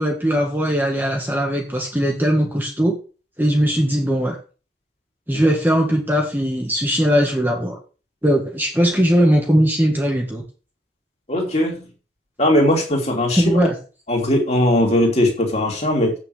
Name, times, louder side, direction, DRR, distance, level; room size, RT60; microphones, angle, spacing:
voice 1, 0.0-2.9 3.4-4.4 5.3-7.8 8.2-10.4 13.4-13.7, equal, 10° right, 0 dB, 1.7 m, -19 dB
voice 2, 11.3-11.9 12.4-13.7 14.1-16.1, left 1 dB, 35° left, 0 dB, 2.9 m, -19 dB
8.4 x 6.4 x 6.4 m, 0.36 s
head